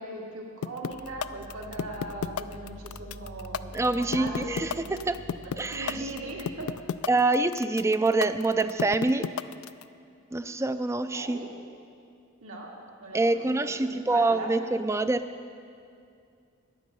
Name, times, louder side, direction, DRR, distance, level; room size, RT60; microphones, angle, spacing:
voice 1, 0.0-4.7 5.4-6.7 11.1-11.5 12.4-14.5, right 1 dB, 75° right, -2 dB, 2.1 m, -39 dB
sound 1, 0.6-9.8, left 8 dB, 75° left, 0.4 m, -31 dB
sound 2, 0.9-7.1, right 1 dB, 45° right, 1.4 m, -46 dB
voice 2, 3.7-5.2 5.6-6.0 7.1-9.3 10.3-11.4 13.1-15.3, right 2 dB, 15° right, 11 dB, 0.4 m, -26 dB
14.5 x 10.0 x 5.4 m, 2.4 s
head